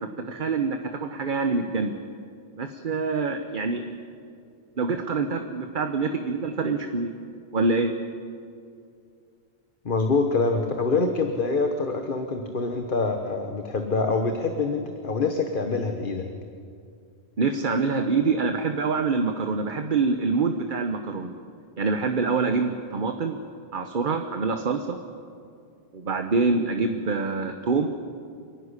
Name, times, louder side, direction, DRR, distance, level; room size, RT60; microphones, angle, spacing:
voice 1, 0.0-1.9 2.6-3.8 4.8-7.1 7.5-7.9 17.4-21.3 21.8-23.4 23.7-25.0 25.9-27.9, right 4 dB, 50° right, 6 dB, 1.2 m, -25 dB
voice 2, 9.8-16.3, left 3 dB, 50° left, 5 dB, 1.4 m, -25 dB
28.0 x 11.5 x 9.8 m, 2.4 s
omnidirectional pair, 1.1 m